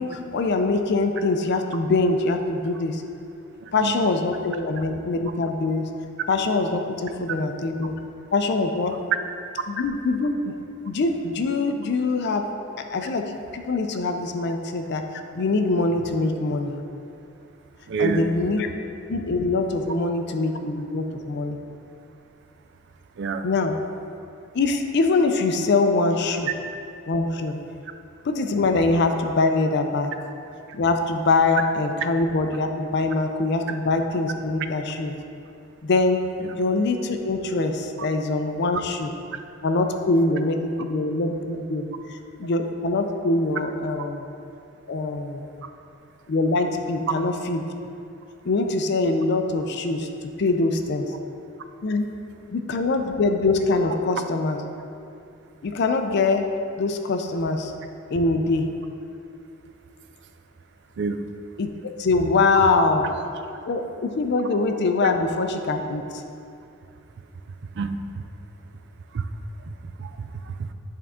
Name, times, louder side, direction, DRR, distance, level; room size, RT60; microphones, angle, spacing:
voice 1, 0.0-3.0 3.7-5.9 6.3-7.9 8.3-9.0 9.7-10.6 10.9-12.5 12.8-16.7 18.0-18.7 19.1-21.6 23.4-23.8 24.5-26.5 27.1-27.6 28.2-30.1 30.7-35.2 35.8-36.2 36.5-39.1 39.6-44.2 44.9-45.5 46.3-47.7 48.4-50.1 50.4-51.1 51.8-52.1 52.5-54.6 55.6-56.5 56.8-57.7 58.1-58.7 61.6-63.1 63.7-66.2, left 3 dB, 55° left, 6 dB, 0.4 m, -23 dB
voice 2, 17.9-18.3 23.2-23.5 45.6-45.7 61.0-61.2 67.8-68.2 69.1-69.3 69.7-69.8 70.0-70.7, right 4 dB, 60° right, 8 dB, 0.4 m, -28 dB
8.4 x 3.6 x 3.6 m, 2.6 s
head